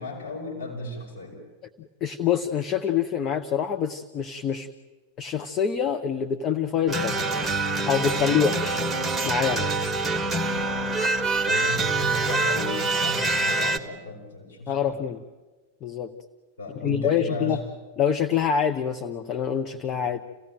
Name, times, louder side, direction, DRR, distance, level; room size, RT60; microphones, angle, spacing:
voice 1, 0.0-1.4 8.1-8.4 10.7-11.1 11.4-15.1 16.6-17.6, left 1 dB, 75° left, -5 dB, 5.9 m, -35 dB
voice 2, 1.8-4.7 5.2-7.2 7.9-8.8 9.2-9.6 14.7-15.2 15.8-16.1 16.8-17.6 18.0-20.2, left 8 dB, 30° left, 7 dB, 0.8 m, -25 dB
sound 1, 6.9-13.8, right 2 dB, 5° right, 1.6 m, -25 dB
28.0 x 16.5 x 9.0 m, 1.3 s
figure-of-eight pair, 90°, 0 cm